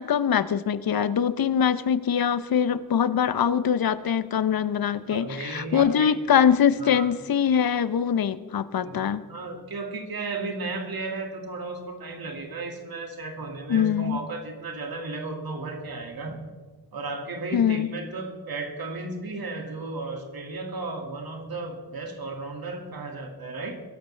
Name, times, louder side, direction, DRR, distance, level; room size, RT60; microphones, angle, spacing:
voice 1, 0.0-9.2 13.7-14.2 17.5-17.9, left 8 dB, 65° left, 14 dB, 0.7 m, -23 dB
voice 2, 5.1-6.1 6.8-7.1 8.8-9.0 9.3-16.4 16.9-23.8, right 3 dB, 65° right, 4 dB, 2.1 m, -34 dB
21.5 x 12.0 x 3.3 m, 1.4 s
wide cardioid pair, 90°, 38 cm